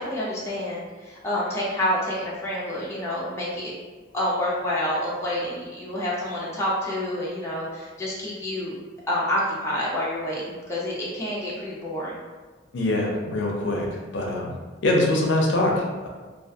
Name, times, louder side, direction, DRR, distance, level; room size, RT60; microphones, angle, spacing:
voice 1, 0.0-3.7 4.1-8.8 9.1-12.2, left 1 dB, 15° left, -6 dB, 0.4 m, -28 dB
voice 2, 12.7-14.5 14.8-16.1, left 1 dB, 75° left, -1 dB, 0.4 m, -23 dB
2.3 x 2.1 x 2.6 m, 1.3 s
head